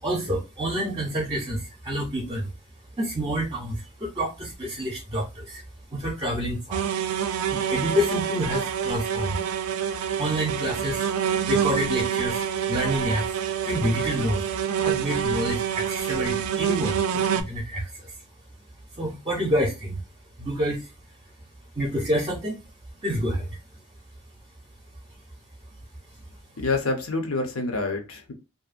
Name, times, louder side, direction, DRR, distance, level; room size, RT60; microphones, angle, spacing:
voice 1, 0.0-2.5 3.0-5.6 5.9-6.9 7.5-9.4 10.2-18.2 18.9-20.0 20.4-20.9 21.7-22.6 23.0-23.6, equal, 25° right, 0.6 m, -28 dB
sound 1, 6.7-17.4, right 8 dB, 85° right, 0.3 m, -27 dB
voice 2, 26.6-28.3, left 3 dB, 75° left, 0.7 m, -27 dB
2.6 x 2.1 x 2.4 m
head